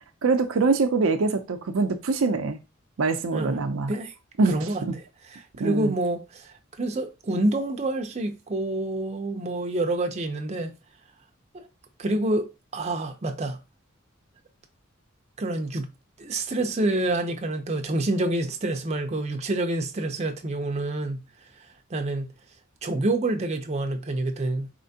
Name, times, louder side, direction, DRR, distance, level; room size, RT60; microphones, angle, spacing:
voice 1, 0.2-2.6 3.0-4.0 4.4-5.0 5.6-5.9, right 4 dB, 80° right, 0.5 m, -24 dB
voice 2, 4.5-4.8 5.6-10.7 11.5-11.7 12.0-12.5 12.7-13.6 15.4-15.9 16.2-21.2 21.9-22.3 22.8-24.7, right 2 dB, 35° right, 0.6 m, -27 dB
4.4 x 3.4 x 2.7 m
head